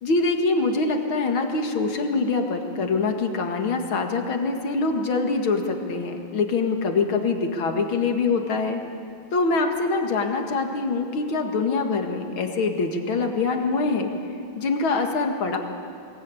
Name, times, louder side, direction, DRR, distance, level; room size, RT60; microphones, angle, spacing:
voice 1, 0.0-8.8 9.3-14.1 14.6-15.6, left 3 dB, 90° left, 4 dB, 2.7 m, -24 dB
23.0 x 19.0 x 9.8 m, 2.6 s
omnidirectional pair, 2.2 m